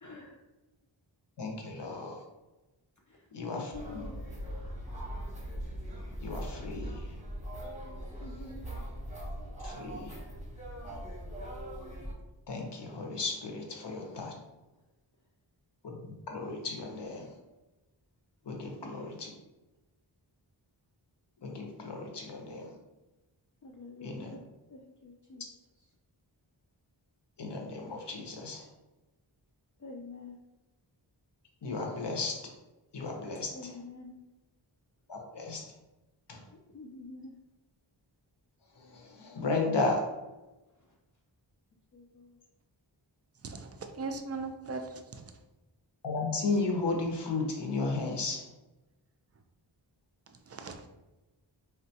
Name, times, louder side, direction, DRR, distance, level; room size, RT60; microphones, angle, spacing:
voice 1, 0.0-0.4 3.5-4.2 8.2-8.7 18.8-18.9 23.6-24.4 24.7-25.4 29.8-30.3 33.5-34.2 36.7-37.3 41.9-42.3, left 3 dB, 45° left, -1 dB, 0.4 m, -47 dB
voice 2, 1.4-2.2 3.3-3.7 6.2-7.1 7.9-8.5 9.6-10.2 12.5-14.4 15.8-17.4 18.4-19.3 21.4-22.7 24.0-24.4 27.4-28.7 31.6-32.5 32.9-33.8 35.1-35.7 36.3-36.4 38.8-40.1 46.0-48.5, left 3 dB, 60° left, 1 dB, 0.7 m, -34 dB
sound 1, 3.7-12.1, equal, 15° right, 0.8 m, -40 dB
voice 3, 43.4-45.2 50.5-50.9, right 3 dB, 35° right, 6 dB, 0.4 m, -39 dB
3.5 x 2.2 x 2.7 m, 1.1 s
wide cardioid pair, 40°, 47 cm